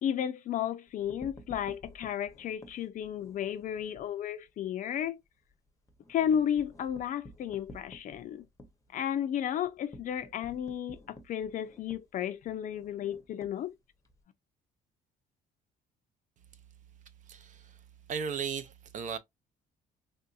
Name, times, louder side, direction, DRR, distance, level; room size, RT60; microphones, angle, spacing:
voice 1, 0.0-5.2 6.1-8.5 8.9-13.7, left 9 dB, 50° left, 0.4 m, -33 dB
sound 1, 0.9-4.1 4.5-4.6 4.9-5.0 5.4-14.2, left 1 dB, 20° left, 0.7 m, -53 dB
voice 2, 17.3-17.7 18.1-19.2, right 6 dB, 50° right, 0.5 m, -36 dB
3.4 x 2.6 x 2.3 m
cardioid pair, 110°, 17 cm